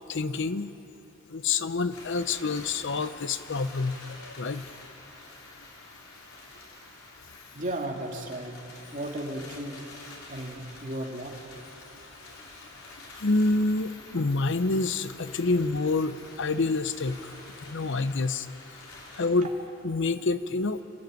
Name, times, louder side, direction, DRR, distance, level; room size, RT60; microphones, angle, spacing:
voice 1, 0.1-0.7 1.3-4.6 13.2-17.3 17.6-18.5 19.1-19.5 19.8-20.8, left 3 dB, 60° left, 12 dB, 0.7 m, -27 dB
sound 1, 1.9-19.3, left 2 dB, 90° left, 4.6 m, -48 dB
voice 2, 7.5-8.5 8.9-9.8 10.3-11.4, right 1 dB, 40° right, 0 dB, 2.6 m, -34 dB
29.5 x 13.5 x 9.1 m, 3.0 s
head